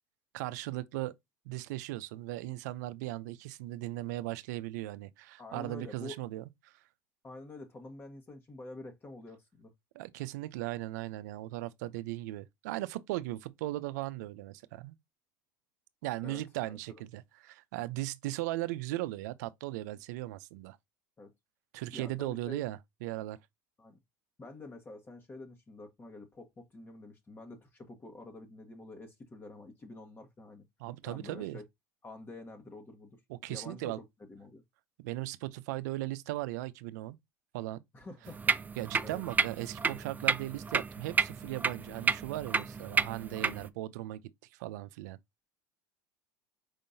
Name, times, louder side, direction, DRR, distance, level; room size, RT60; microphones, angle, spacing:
voice 1, 0.3-1.1 1.5-6.7 9.9-14.9 16.0-20.8 21.7-23.4 30.8-31.6 33.3-34.0 35.0-37.2 37.5-37.8 38.8-44.2 44.5-45.2, right 17 dB, 80° right, 0.5 m, -38 dB
voice 2, 5.4-6.2 7.2-9.7 16.2-16.8 21.2-21.3 21.9-22.6 23.8-24.0 24.4-30.6 31.0-31.6 32.0-33.2 33.5-34.6 37.9-38.4 39.0-39.2, left 2 dB, 25° left, 1.3 m, -48 dB
sound 1, 38.3-43.7, right 5 dB, 20° right, 0.5 m, -31 dB
5.3 x 3.7 x 2.7 m
supercardioid pair, 95°, 9 cm